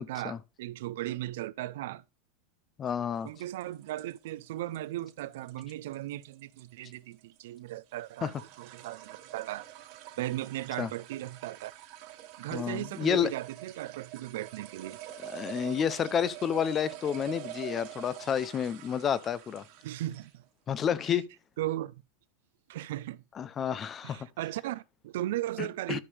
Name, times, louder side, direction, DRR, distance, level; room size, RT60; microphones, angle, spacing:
voice 1, 0.0-2.0 3.2-11.7 12.4-15.0 19.8-20.4 21.1-21.2 21.6-21.9 22.7-23.2 24.0-26.0, right 15 dB, 70° right, 0.5 m, -37 dB
voice 2, 2.8-3.3 8.2-8.3 10.8-10.9 12.5-13.3 15.2-19.6 20.7-21.3 23.4-24.2 25.6-26.0, left 8 dB, 25° left, 0.6 m, -30 dB
sound 1, 3.3-20.4, right 14 dB, 50° right, 1.5 m, -46 dB
12.5 x 5.3 x 3.3 m
supercardioid pair, 145°, 0 cm